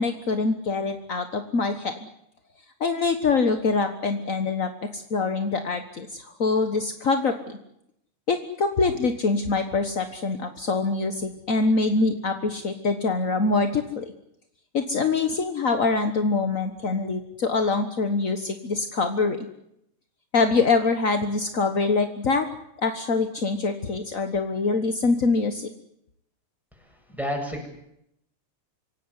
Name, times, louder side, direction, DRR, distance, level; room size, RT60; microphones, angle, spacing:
voice 1, 0.0-1.9 2.8-7.6 8.3-14.1 14.7-19.5 20.3-22.5 22.8-25.7, left 4 dB, 50° left, 7 dB, 1.0 m, -24 dB
voice 2, 27.1-27.7, equal, ahead, 1 dB, 7.4 m, -29 dB
26.0 x 17.5 x 9.8 m, 0.78 s
omnidirectional pair, 3.5 m